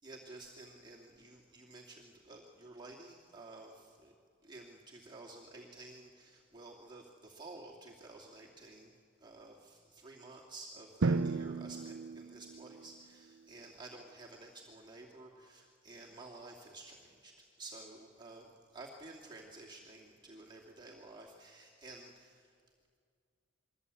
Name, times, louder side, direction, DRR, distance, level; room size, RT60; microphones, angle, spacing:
voice 1, 0.0-4.2 4.4-22.5, right 2 dB, 25° right, -3 dB, 2.5 m, -52 dB
Drum, 11.0-12.9, right 3 dB, 65° right, 0.6 m, -34 dB
28.5 x 22.5 x 8.5 m, 2.2 s
head